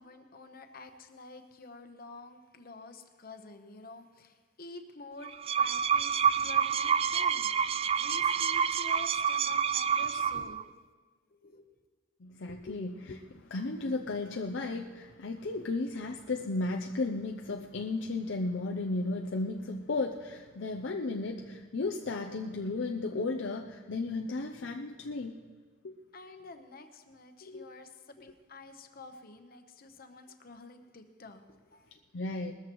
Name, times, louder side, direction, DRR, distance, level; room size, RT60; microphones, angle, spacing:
voice 1, 0.0-10.7 11.3-11.6 26.1-32.0, left 3 dB, 50° left, 7 dB, 1.0 m, -49 dB
sound 1, 5.2-10.6, right 7 dB, 30° right, 0.3 m, -28 dB
voice 2, 12.2-25.4 25.8-26.0 27.4-27.7 32.1-32.5, left 3 dB, 70° left, 2 dB, 0.6 m, -34 dB
20.5 x 13.5 x 3.1 m, 1.4 s
head